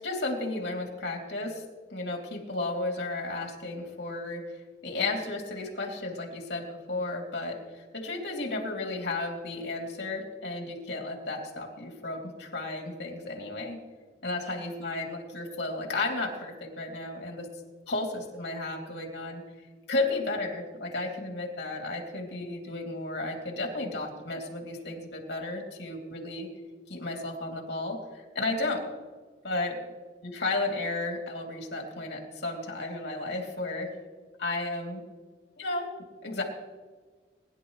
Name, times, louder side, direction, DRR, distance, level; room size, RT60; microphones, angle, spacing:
voice 1, 0.0-1.6 1.9-4.4 4.8-13.8 14.2-17.5 17.9-19.4 19.9-26.5 26.9-28.9 29.4-29.8 30.2-33.9 34.4-35.0 35.6-35.9 36.2-36.4, left 2 dB, 60° left, 0 dB, 3.0 m, -33 dB
21.0 x 11.0 x 3.2 m, 1.4 s
head